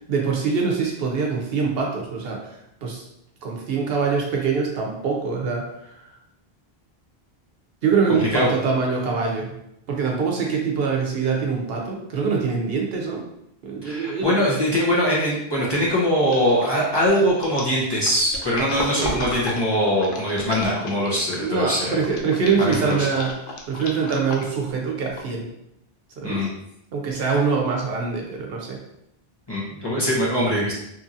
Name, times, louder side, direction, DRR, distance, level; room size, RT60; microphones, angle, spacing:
voice 1, 0.1-2.5 2.8-3.0 3.4-6.1 7.8-9.5 9.9-13.2 13.6-14.4 18.7-19.2 21.4-25.5 26.2-26.5 26.9-28.8, right 5 dB, 70° right, 0 dB, 0.8 m, -24 dB
voice 2, 13.8-22.0 22.6-22.7 23.0-23.1 26.2-26.5 29.5-30.7, equal, 30° left, -7 dB, 0.7 m, -22 dB
sound 1, 15.1-15.3 15.7-21.5 22.0-24.7 25.2-25.3, left 2 dB, 65° left, 0.7 m, -34 dB
2.9 x 2.6 x 2.5 m, 0.80 s
omnidirectional pair, 1.1 m